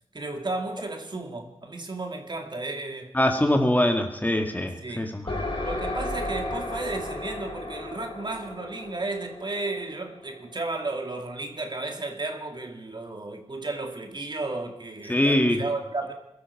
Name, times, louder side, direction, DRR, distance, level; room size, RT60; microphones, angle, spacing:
voice 1, 0.1-3.1 4.8-5.1 5.6-16.1, right 2 dB, 45° right, 2.3 m, -33 dB
voice 2, 3.1-5.4 15.1-15.6, left 1 dB, 15° left, 1.9 m, -23 dB
sound 1, 5.3-10.9, left 1 dB, 55° left, 4.8 m, -34 dB
22.5 x 13.0 x 4.8 m
wide cardioid pair, 75°, 11 cm